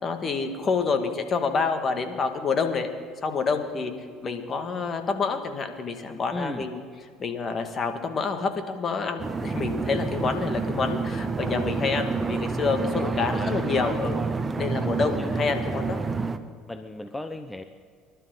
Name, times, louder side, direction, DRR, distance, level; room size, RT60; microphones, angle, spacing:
voice 1, 0.0-2.9 3.2-3.9 4.2-6.8 7.2-14.2 14.6-16.0, left 5 dB, 40° left, 6 dB, 2.0 m, -27 dB
voice 2, 6.3-6.7 12.9-13.6 15.2-15.3 16.7-17.6, left 1 dB, 10° left, 8 dB, 0.8 m, -36 dB
sound 1, 9.2-16.4, right 4 dB, 25° right, 1.0 m, -28 dB
26.0 x 12.0 x 3.9 m, 2.1 s
supercardioid pair, 85°, 0 cm